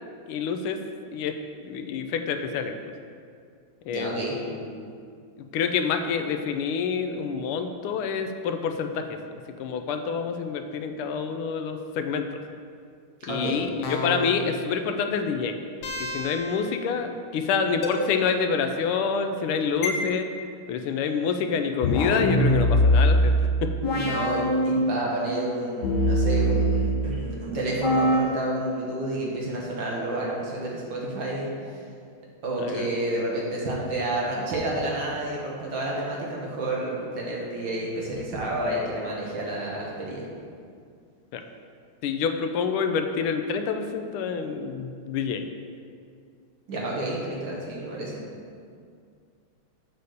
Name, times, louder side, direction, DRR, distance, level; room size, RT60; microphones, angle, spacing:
voice 1, 0.3-0.8 1.1-1.3 1.6-2.7 3.9-4.9 5.4-9.2 9.6-12.4 13.3-15.6 16.0-20.3 20.7-23.3 23.6-23.7 32.6-32.9 38.1-38.2 41.3-41.4 42.0-45.4, left 6 dB, 90° left, 6 dB, 1.5 m, -27 dB
voice 2, 3.9-4.4 13.3-13.6 23.9-31.5 32.4-40.2 46.7-48.2, right 1 dB, 60° right, -3 dB, 2.0 m, -30 dB
sound 1, 13.8-14.6 15.8-16.6 17.8-17.9 19.8-19.9 21.8-25.2 25.8-27.3 27.8-28.2, equal, 60° left, 1.4 m, -23 dB
8.0 x 4.1 x 6.6 m, 2.2 s
omnidirectional pair, 2.4 m